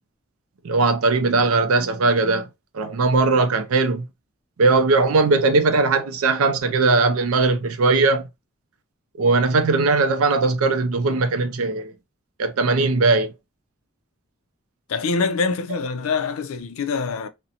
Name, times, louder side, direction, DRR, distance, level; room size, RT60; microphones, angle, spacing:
voice 1, 0.6-2.5 2.7-4.0 4.6-8.3 9.2-11.9 12.4-13.3, right 3 dB, 85° right, 0.5 m, -19 dB
voice 2, 14.9-17.3, left 4 dB, 80° left, 0.4 m, -24 dB
2.5 x 2.1 x 2.7 m
head